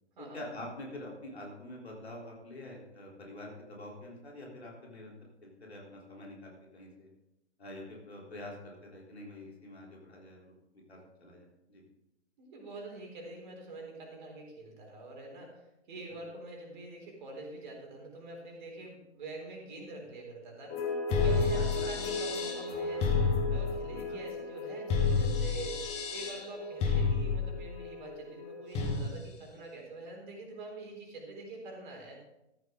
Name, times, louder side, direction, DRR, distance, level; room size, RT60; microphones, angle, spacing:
voice 1, 0.2-5.1 5.4-7.1 7.6-10.5 10.9-11.8 21.5-21.7 23.9-24.2, left 1 dB, 65° left, -2 dB, 3.7 m, -46 dB
voice 2, 12.4-23.1 23.5-32.2, right 2 dB, 45° right, 1 dB, 3.9 m, -45 dB
sound 1, 20.7-29.1, left 4 dB, 20° left, 1.6 m, -31 dB
14.0 x 9.4 x 3.8 m, 0.87 s
figure-of-eight pair, 125°, 34 cm